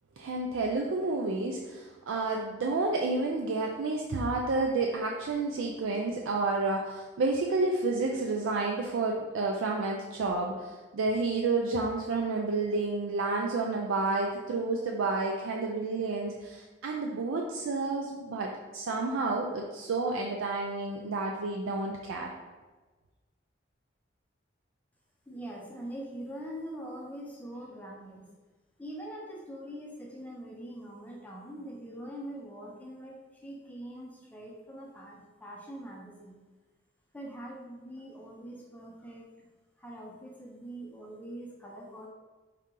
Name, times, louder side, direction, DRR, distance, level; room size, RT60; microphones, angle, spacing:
voice 1, 0.2-22.3, right 3 dB, 90° right, 0 dB, 0.4 m, -30 dB
voice 2, 25.3-28.3 28.8-36.4 37.1-39.5 39.8-42.1, right 1 dB, 10° left, -2 dB, 0.5 m, -43 dB
4.8 x 2.8 x 3.7 m, 1.3 s
head